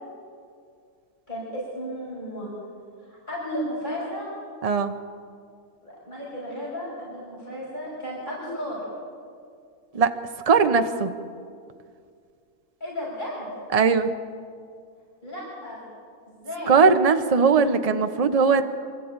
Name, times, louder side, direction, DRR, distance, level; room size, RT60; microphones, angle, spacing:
voice 1, 1.3-2.5 3.0-4.3 5.8-8.8 12.8-13.6 15.2-15.9 16.3-16.8, equal, 30° left, -6 dB, 6.4 m, -34 dB
voice 2, 4.6-4.9 9.9-10.1 10.5-11.1 13.7-14.1 16.7-18.6, right 5 dB, 30° right, 7 dB, 0.8 m, -19 dB
25.0 x 14.0 x 8.9 m, 2.3 s
omnidirectional pair, 1.7 m